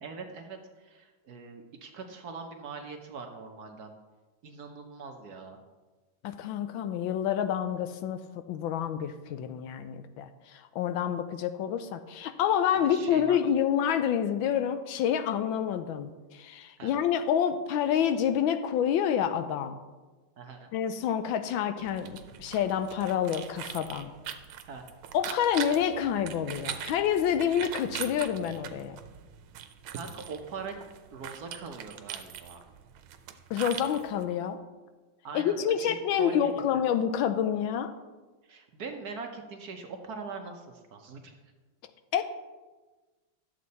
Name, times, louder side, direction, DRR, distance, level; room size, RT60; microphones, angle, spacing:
voice 1, 0.0-3.9 4.4-5.6 12.8-13.4 16.8-16.9 20.4-20.7 24.7-24.8 29.9-30.8 31.1-32.6 35.2-36.9 38.4-41.4, right 4 dB, 60° right, 4 dB, 1.1 m, -42 dB
voice 2, 6.2-8.2 8.5-19.8 20.7-24.1 25.1-29.0 33.5-34.6 35.3-37.9 42.1-42.2, left 9 dB, 80° left, 10 dB, 1.3 m, -28 dB
sound 1, 21.8-34.2, right 9 dB, 85° right, 1.6 m, -42 dB
11.0 x 7.5 x 4.1 m, 1.3 s
omnidirectional pair, 2.3 m